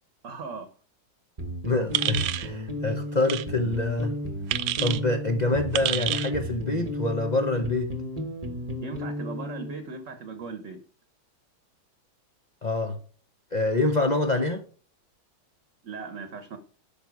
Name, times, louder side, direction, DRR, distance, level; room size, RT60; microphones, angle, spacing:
voice 1, 0.2-0.7 8.8-10.8 15.8-16.6, right 4 dB, 45° right, 1.1 m, -38 dB
sound 1, 1.4-9.8, equal, 25° right, 0.8 m, -34 dB
voice 2, 1.6-4.1 4.8-7.9 12.6-13.0 13.5-14.6, left 2 dB, 70° left, 0.4 m, -26 dB
sound 2, 1.9-2.5 3.2-3.4 4.5-5.0 5.7-6.3, right 13 dB, 75° right, 0.9 m, -28 dB
8.9 x 6.0 x 4.7 m
omnidirectional pair, 2.3 m